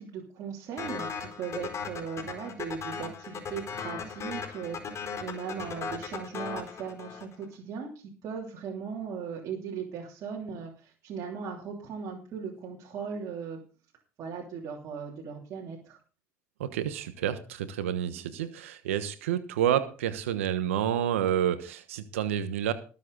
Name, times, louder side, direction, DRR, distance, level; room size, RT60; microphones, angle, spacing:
voice 1, 0.0-13.6 14.2-16.0 18.1-18.2, right 6 dB, 55° right, -2 dB, 3.1 m, -38 dB
sound 1, 0.8-7.4, left 6 dB, 45° left, 4.5 m, -37 dB
voice 2, 16.6-22.7, right 10 dB, 90° right, 12 dB, 1.1 m, -29 dB
19.5 x 7.6 x 4.0 m, 0.37 s
hypercardioid pair, 70°, 7 cm